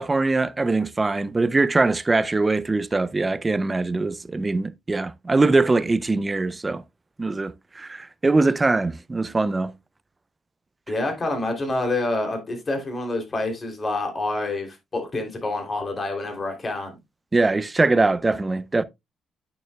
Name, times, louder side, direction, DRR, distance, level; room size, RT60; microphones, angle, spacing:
voice 1, 0.0-6.8 7.2-9.7 17.3-18.8, right 3 dB, 20° right, 0.5 m, -22 dB
voice 2, 10.9-17.0, left 2 dB, 35° left, 3.0 m, -27 dB
8.9 x 6.9 x 2.3 m
cardioid pair, 90°, 0 cm